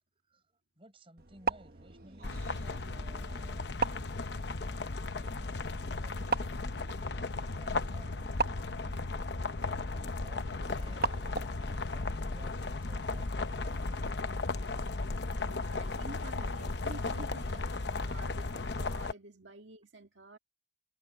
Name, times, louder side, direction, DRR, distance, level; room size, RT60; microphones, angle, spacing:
voice 1, 0.8-3.7 4.4-6.3 7.4-8.4 9.2-13.8 14.9-15.1, right 1 dB, 30° right, 5.8 m, -58 dB
sound 1, 1.2-11.7, right 4 dB, 50° right, 1.0 m, -40 dB
sound 2, 2.2-19.1, left 3 dB, 65° left, 0.8 m, -36 dB
sound 3, 10.6-18.6, left 1 dB, 25° left, 0.6 m, -49 dB
voice 2, 15.3-20.4, right 2 dB, 90° right, 1.9 m, -50 dB
head